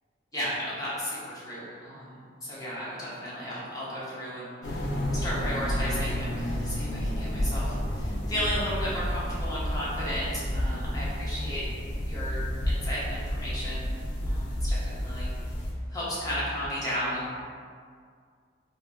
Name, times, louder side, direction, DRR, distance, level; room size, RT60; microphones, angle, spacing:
voice 1, 0.3-11.6 12.1-13.8 14.2-15.3 15.9-17.4, equal, 20° left, -8 dB, 0.7 m, -34 dB
sound 1, 4.6-15.7, equal, 75° left, 0.4 m, -31 dB
sound 2, 7.8-16.7, equal, 55° left, 1.1 m, -39 dB
2.9 x 2.3 x 2.3 m, 2.1 s
head